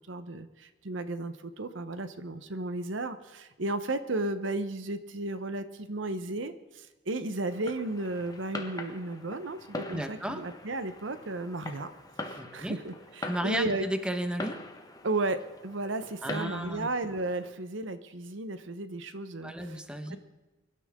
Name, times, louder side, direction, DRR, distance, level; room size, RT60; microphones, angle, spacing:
voice 1, 0.1-6.5 7.1-9.6 9.9-11.9 12.3-13.9 15.0-19.8 20.1-20.2, right 2 dB, 65° right, 11 dB, 0.9 m, -34 dB
Fireworks, 7.5-17.5, left 2 dB, 20° left, 1.4 m, -43 dB
voice 2, 9.9-10.4 12.4-12.8 13.2-14.6 16.2-16.9 19.4-20.2, equal, 5° right, 6 dB, 1.3 m, -33 dB
24.0 x 12.5 x 3.7 m, 1.1 s
head